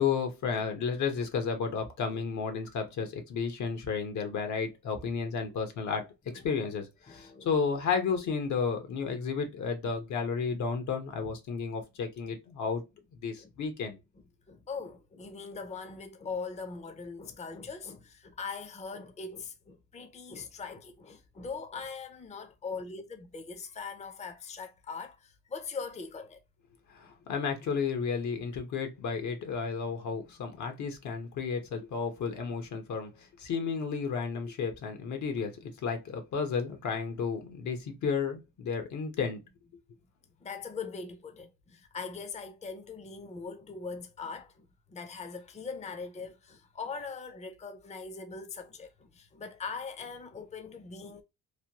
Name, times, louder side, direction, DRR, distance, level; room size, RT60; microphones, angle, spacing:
voice 1, 0.0-6.0 6.4-12.8 13.2-14.0 26.9-33.1 33.4-39.4, left 5 dB, 70° left, 1.0 m, -32 dB
voice 2, 6.3-6.6 7.1-7.6 13.4-13.5 14.5-26.4 40.4-51.2, left 5 dB, 25° left, 0.6 m, -41 dB
3.2 x 2.2 x 2.8 m
cardioid pair, 90°, 30 cm